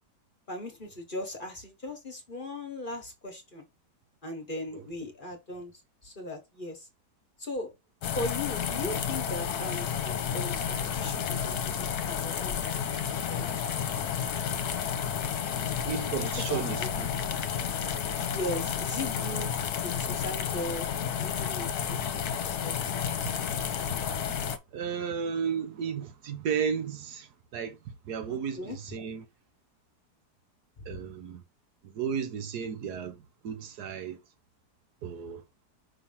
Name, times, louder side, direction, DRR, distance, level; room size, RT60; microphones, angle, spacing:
voice 1, 0.5-3.7 4.2-5.7 6.0-6.9 7.4-7.7 8.1-12.6 13.3-13.5 16.2-16.9 18.3-19.5 19.8-20.9 21.2-22.8 28.3-28.8, left 1 dB, 35° left, 1.3 m, -38 dB
sound 1, 8.0-24.6, left 8 dB, 70° left, 1.3 m, -31 dB
voice 2, 15.8-17.1 23.9-29.3 30.8-31.4 31.8-34.2 35.0-35.4, right 7 dB, 70° right, 1.4 m, -34 dB
5.8 x 2.9 x 5.5 m
omnidirectional pair, 1.8 m